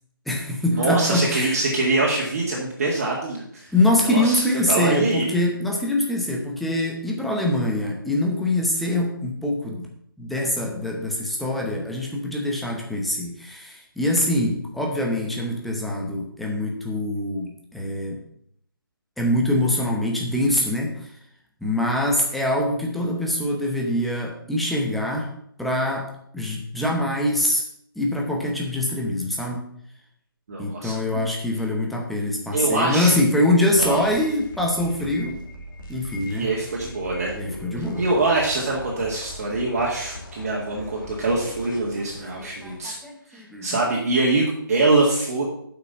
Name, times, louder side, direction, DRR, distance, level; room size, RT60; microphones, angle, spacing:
voice 1, 0.3-1.6 3.7-9.9 10.2-18.2 19.2-21.1 21.6-25.3 25.6-26.1 26.3-27.6 28.0-29.7 30.6-35.4 35.9-36.5 37.3-38.1 42.0-42.1 42.4-43.8, left 1 dB, ahead, -1 dB, 0.8 m, -24 dB
voice 2, 0.8-3.7 4.0-5.3 30.5-31.2 32.5-33.1 33.8-34.0 36.3-37.3 38.0-43.0 43.3-45.4, right 2 dB, 40° right, -4 dB, 2.0 m, -24 dB
sound 1, 33.8-42.8, left 1 dB, 55° left, 2.4 m, -40 dB
7.8 x 6.0 x 6.9 m, 0.70 s
figure-of-eight pair, 165°, 12 cm